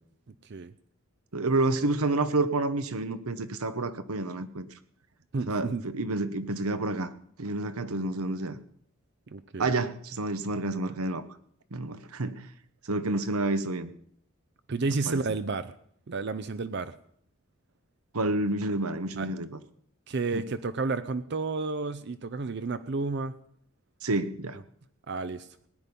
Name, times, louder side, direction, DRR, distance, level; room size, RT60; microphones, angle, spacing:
voice 1, 1.3-4.7 5.5-7.1 7.4-8.6 9.6-11.2 11.7-12.4 12.9-13.9 15.1-15.2 18.1-19.5 20.3-20.4 24.0-24.6, right 2 dB, 90° right, 12 dB, 1.0 m, -29 dB
voice 2, 5.3-5.8 9.3-9.7 14.7-15.7 16.1-16.9 19.2-19.3 20.1-23.3 25.1-25.5, right 3 dB, 50° right, 12 dB, 0.5 m, -31 dB
18.5 x 9.9 x 5.3 m, 0.67 s
head